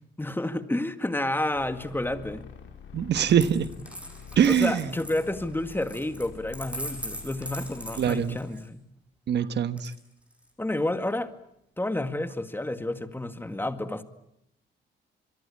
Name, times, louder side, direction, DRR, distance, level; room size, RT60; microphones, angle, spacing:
voice 1, 0.2-2.5 4.5-8.8 10.6-11.3 11.8-14.0, left 1 dB, 10° left, 10 dB, 2.1 m, -30 dB
sound 1, 1.5-8.5, left 6 dB, 75° left, 5.6 m, -46 dB
voice 2, 2.9-3.7 4.4-4.9 8.0-8.4 9.3-9.9, right 8 dB, 60° right, 12 dB, 1.3 m, -23 dB
Coin (dropping), 3.3-8.7 9.8-10.5, equal, 5° right, 7.6 m, -41 dB
26.5 x 23.0 x 8.7 m, 0.77 s
cardioid pair, 90°, 20 cm